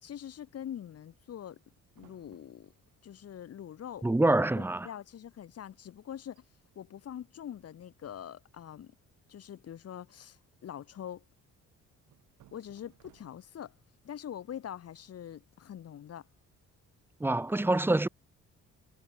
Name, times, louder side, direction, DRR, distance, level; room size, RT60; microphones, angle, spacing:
voice 1, 0.0-1.6 2.0-2.7 3.0-4.1 4.6-6.4 6.7-8.9 9.3-11.2 12.5-13.7 14.0-16.3, left 10 dB, 55° left, 1.3 m, -44 dB
sound 1, 1.9-3.1 4.0-4.1 4.2-4.6 4.9-5.1 5.7-5.8 6.2-6.5 7.6-8.1 10.1-11.1 12.0-13.7, right 13 dB, 80° right, 6.5 m, -64 dB
voice 2, 4.0-4.9 17.2-18.1, right 2 dB, 5° right, 0.7 m, -26 dB
cardioid pair, 90°, 30 cm